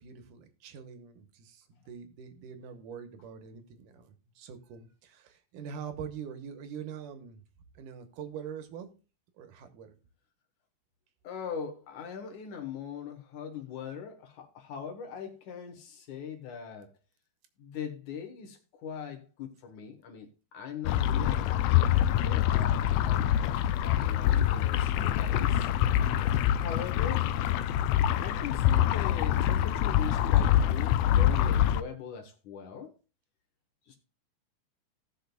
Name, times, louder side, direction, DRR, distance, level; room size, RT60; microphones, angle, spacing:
voice 1, 0.0-7.4 7.8-8.9 9.4-9.9, right 7 dB, 85° right, 9 dB, 2.6 m, -44 dB
voice 2, 11.2-16.9 17.6-25.7 26.5-27.3 28.2-32.9 33.9-34.0, left 7 dB, 70° left, 4 dB, 2.9 m, -41 dB
sound 1, 20.8-31.8, left 11 dB, 85° left, 1.5 m, -25 dB
18.0 x 6.3 x 2.3 m, 0.32 s
omnidirectional pair, 3.7 m